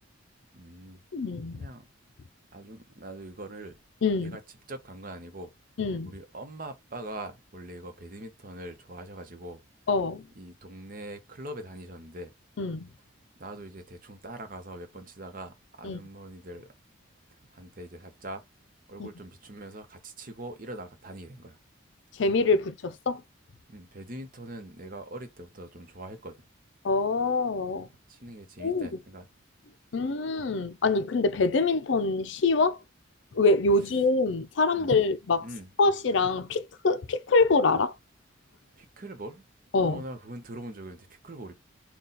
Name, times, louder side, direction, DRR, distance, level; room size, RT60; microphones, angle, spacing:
voice 1, 0.5-1.0 1.5-1.9 2.5-3.8 4.2-4.4 4.7-5.5 6.0-9.6 10.4-12.3 13.4-16.7 17.5-18.4 18.9-21.6 23.7-26.4 28.1-29.3 34.7-34.9 35.4-35.7 38.8-39.4 39.8-41.5, right 1 dB, 45° right, 0.8 m, -42 dB
voice 2, 1.1-1.6 4.0-4.4 5.8-6.1 9.9-10.3 12.6-12.9 15.8-16.0 19.0-19.1 22.2-23.2 26.8-27.9 28.6-29.0 29.9-32.8 33.3-35.5 35.8-37.9 39.7-40.0, left 3 dB, 65° left, 0.5 m, -25 dB
4.1 x 2.3 x 3.9 m
head